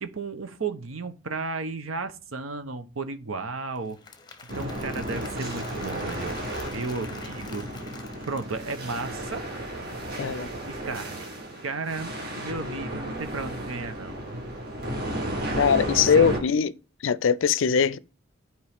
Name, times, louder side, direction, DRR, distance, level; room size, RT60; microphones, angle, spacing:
voice 1, 0.0-4.0 4.5-7.6 8.3-9.4 10.7-11.3 11.6-12.1 12.4-14.5 16.2-16.3, right 3 dB, 85° right, 0.9 m, -34 dB
Applause / Crowd, 3.7-9.1, left 4 dB, 20° left, 0.8 m, -46 dB
sound 1, 4.5-16.4, right 1 dB, 50° right, 1.9 m, -33 dB
voice 2, 10.2-10.5 15.6-16.7 17.0-18.0, left 6 dB, 70° left, 0.4 m, -21 dB
11.0 x 4.6 x 3.5 m
head